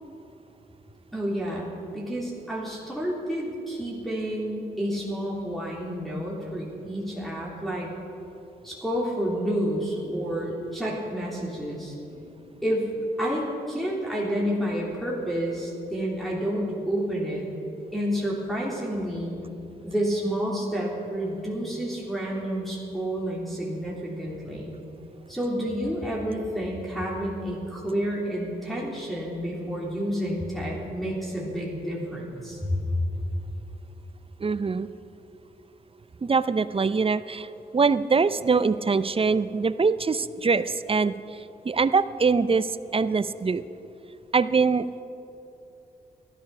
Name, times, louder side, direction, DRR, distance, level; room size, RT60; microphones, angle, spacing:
voice 1, 1.1-7.9 8.6-12.9 13.2-17.5 17.9-19.4 19.8-24.8 25.3-32.8, equal, ahead, -6 dB, 3.2 m, -30 dB
voice 2, 34.4-34.9 36.2-37.5 37.7-41.1 41.6-43.6 44.3-45.0, right 4 dB, 30° right, 15 dB, 0.6 m, -23 dB
13.5 x 12.0 x 5.9 m, 2.9 s
supercardioid pair, 45°, 18 cm